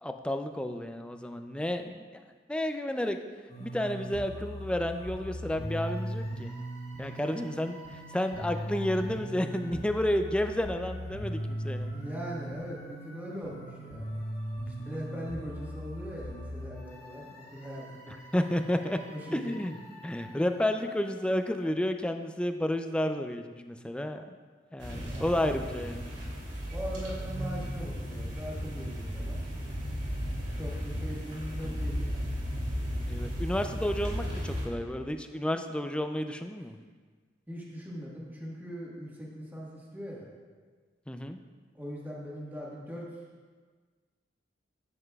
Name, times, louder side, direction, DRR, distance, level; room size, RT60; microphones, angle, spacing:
voice 1, 0.0-2.2 2.5-3.2 3.6-6.6 7.0-7.8 8.1-11.9 18.3-19.0 19.3-24.2 24.7-26.0 33.1-36.8 41.1-41.4, left 1 dB, 5° left, 6 dB, 0.3 m, -31 dB
sound 1, 3.5-21.7, equal, 35° left, 1.4 m, -40 dB
voice 2, 11.9-14.1 14.9-18.2 19.0-19.6 24.9-25.4 26.7-29.4 30.5-32.3 37.5-40.3 41.7-43.1, equal, 10° right, -5 dB, 1.4 m, -40 dB
sound 2, 24.8-34.7, equal, 70° right, 2.5 m, -35 dB
10.5 x 7.8 x 2.3 m, 1.5 s
head